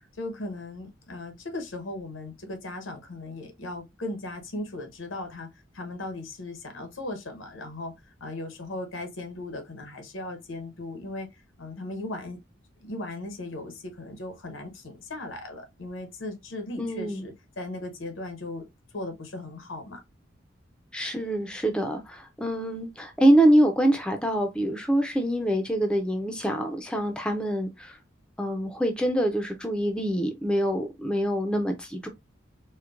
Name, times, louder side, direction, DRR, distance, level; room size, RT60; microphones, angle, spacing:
voice 1, 0.2-7.9 8.2-11.3 11.6-12.4 12.8-18.7 18.9-20.0, left 2 dB, 85° left, 0.9 m, -37 dB
voice 2, 16.8-17.2 20.9-28.0 28.4-32.1, right 1 dB, 5° left, 0.4 m, -25 dB
4.4 x 2.1 x 2.4 m
head